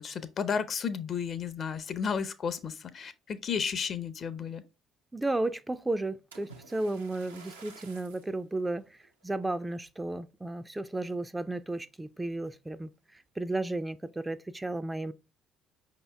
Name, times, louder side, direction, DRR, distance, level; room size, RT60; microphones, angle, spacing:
voice 1, 0.0-4.6, left 6 dB, 50° left, 0.5 m, -33 dB
voice 2, 5.1-15.1, right 2 dB, 15° right, 0.3 m, -34 dB
Splash splatter, 6.3-8.3 9.0-9.2 9.8-9.9, right 4 dB, 90° right, 0.6 m, -51 dB
5.3 x 2.9 x 3.3 m
hypercardioid pair, 55°, 0 cm